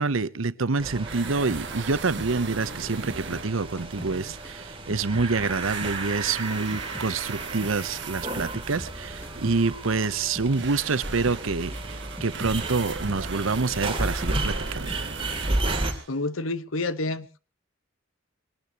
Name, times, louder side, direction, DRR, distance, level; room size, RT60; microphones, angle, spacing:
voice 1, 0.0-15.0, right 4 dB, 85° right, 0.9 m, -27 dB
sound 1, 0.8-15.9, right 2 dB, 25° right, 2.8 m, -33 dB
sound 2, 1.0-5.1 5.4-16.2, right 6 dB, 60° right, 1.1 m, -40 dB
sound 3, 1.5-4.2 4.4-7.1 7.4-10.8 11.0-11.5 11.7-14.4 14.7-15.1 15.4-16.0, equal, 10° left, 0.9 m, -43 dB
voice 2, 16.1-17.4, left 2 dB, 90° left, 1.2 m, -29 dB
23.0 x 19.0 x 3.0 m
head